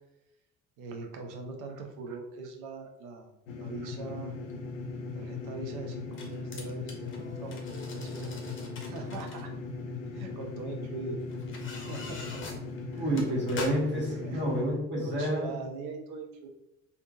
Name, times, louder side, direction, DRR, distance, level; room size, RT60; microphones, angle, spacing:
voice 1, 0.8-4.4 5.1-8.3 8.8-9.5 10.1-11.2 11.7-12.4 12.9-13.2 14.2-14.5 15.0-16.5, right 4 dB, 50° right, 3 dB, 0.7 m, -41 dB
sound 1, 3.5-14.6, left 3 dB, 70° left, 0.6 m, -38 dB
sound 2, 4.5-4.6 5.9-9.4 10.4-10.5 11.3-14.0 14.5-14.6, left 3 dB, 30° left, 0.8 m, -43 dB
voice 2, 13.0-15.6, right 1 dB, 25° right, -3 dB, 1.4 m, -29 dB
3.5 x 2.7 x 2.4 m, 0.91 s
figure-of-eight pair, 55°, 41 cm